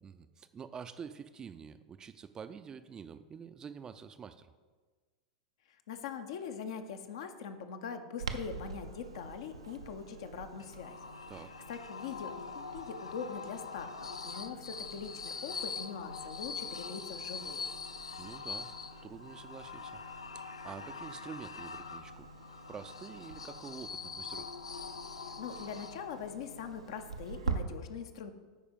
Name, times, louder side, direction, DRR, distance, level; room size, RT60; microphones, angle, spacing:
voice 1, 0.0-4.5 11.3-11.5 18.2-18.7 19.0-20.0 20.3-22.3 22.7-24.5, right 6 dB, 25° right, 11 dB, 0.4 m, -47 dB
voice 2, 5.9-11.0 11.7-17.7 25.4-28.3, left 6 dB, 60° left, 7 dB, 0.8 m, -42 dB
Clock, 8.2-27.6, right 4 dB, 85° right, 0.6 m, -46 dB
sound 1, 10.6-26.3, left 5 dB, 80° left, 0.4 m, -44 dB
10.0 x 4.3 x 5.2 m, 1.4 s
figure-of-eight pair, 90°, 3 cm